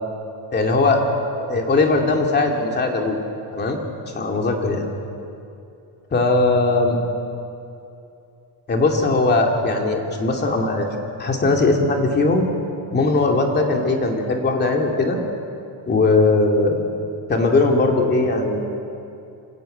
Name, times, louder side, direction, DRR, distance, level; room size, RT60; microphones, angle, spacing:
voice 1, 0.5-1.0 1.4-3.2 3.5-3.8 4.1-4.8 6.1-7.0 8.7-10.9 11.2-12.5 12.9-15.2 15.9-16.8 17.3-18.6, left 3 dB, 25° left, 2 dB, 2.5 m, -19 dB
26.5 x 15.5 x 9.2 m, 2.7 s
cardioid pair, 175°, 42 cm